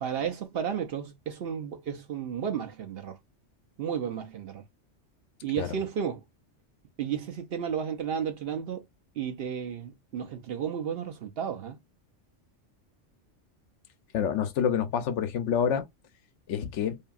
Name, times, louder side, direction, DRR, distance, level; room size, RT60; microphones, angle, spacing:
voice 1, 0.0-3.2 3.8-4.6 5.4-6.2 7.0-8.8 9.2-11.8, right 8 dB, 60° right, 0.7 m, -33 dB
voice 2, 14.1-15.9 16.5-17.0, left 8 dB, 75° left, 0.9 m, -27 dB
2.7 x 2.6 x 2.3 m
omnidirectional pair, 1.3 m